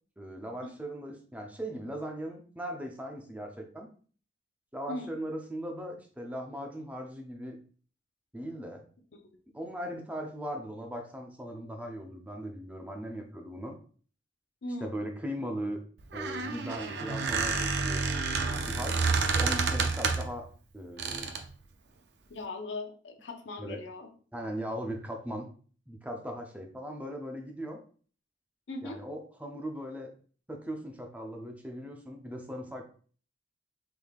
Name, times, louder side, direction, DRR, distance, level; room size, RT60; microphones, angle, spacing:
voice 1, 0.2-3.9 4.7-7.6 8.3-8.8 9.5-13.8 14.8-15.8 16.1-18.0 18.7-20.5 20.7-21.3 23.6-23.8 24.3-25.5 25.9-27.8 28.8-30.1 30.5-32.9, equal, 10° right, 2 dB, 0.5 m, -39 dB
voice 2, 14.6-14.9 18.8-19.1 22.3-24.1 28.7-29.0, left 2 dB, 70° left, 4 dB, 0.6 m, -39 dB
Squeak, 16.0-20.4 21.0-21.5, right 4 dB, 60° right, 0.4 m, -29 dB
3.5 x 3.2 x 2.3 m, 0.43 s
head